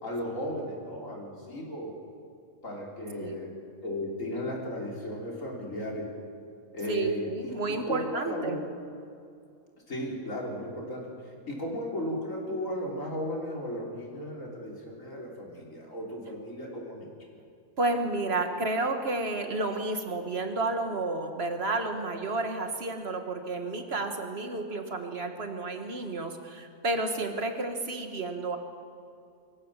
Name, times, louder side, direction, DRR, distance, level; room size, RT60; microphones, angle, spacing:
voice 1, 0.0-1.9 2.6-6.1 6.7-8.7 9.9-17.1, equal, 65° left, -1 dB, 3.9 m, -35 dB
voice 2, 3.1-3.5 6.9-8.6 17.8-28.6, right 2 dB, 45° right, 5 dB, 1.9 m, -31 dB
24.0 x 15.0 x 7.5 m, 2.4 s
omnidirectional pair, 1.5 m